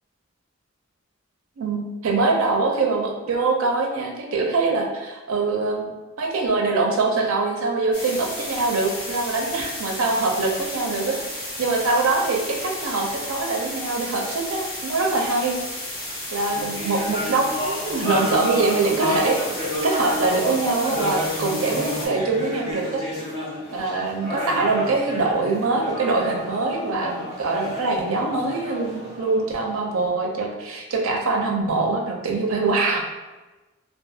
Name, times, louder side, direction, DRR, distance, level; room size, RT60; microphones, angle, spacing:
voice 1, 1.6-4.1 4.3-5.9 6.2-15.6 16.3-19.4 19.8-23.0 23.7-33.0, right 3 dB, 80° right, 1 dB, 0.5 m, -23 dB
sound 1, 7.9-22.1, left 1 dB, 75° left, 1.0 m, -33 dB
sound 2, 16.4-30.1, left 1 dB, 25° left, 1.4 m, -30 dB
2.3 x 2.3 x 2.6 m, 1.2 s
head